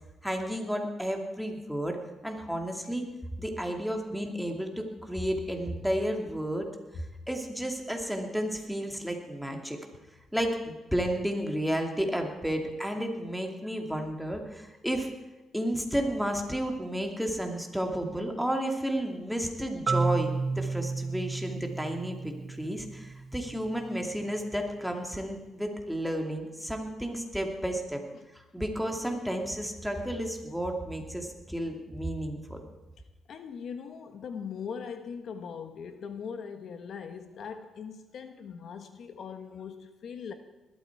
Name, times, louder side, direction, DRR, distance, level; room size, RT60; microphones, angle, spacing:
voice 1, 0.2-2.0 2.2-3.1 3.4-6.7 6.9-9.8 10.3-15.1 15.5-28.0 28.3-32.6, equal, ahead, 2 dB, 2.6 m, -32 dB
Marimba xylophone, 19.9-23.7, right 4 dB, 35° right, 0.7 m, -32 dB
voice 2, 33.3-40.3, left 6 dB, 60° left, 8 dB, 1.2 m, -40 dB
20.0 x 13.0 x 4.7 m, 1.1 s
cardioid pair, 90°, 0 cm